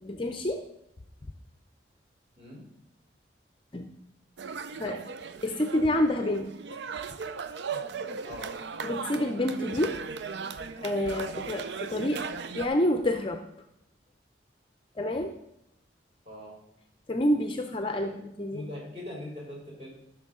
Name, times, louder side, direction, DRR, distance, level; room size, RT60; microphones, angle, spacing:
voice 1, 0.0-0.6 3.7-3.9 4.8-5.0 5.4-6.5 8.8-10.0 10.2-10.4 10.8-12.2 12.5-13.4 15.0-15.4 17.1-18.7, left 1 dB, 30° left, 6 dB, 0.5 m, -28 dB
sound 1, 4.4-12.7, right 5 dB, 70° right, 0.5 m, -37 dB
voice 2, 18.5-19.9, left 1 dB, 35° right, -4 dB, 3.8 m, -41 dB
13.0 x 6.3 x 3.7 m, 0.81 s
head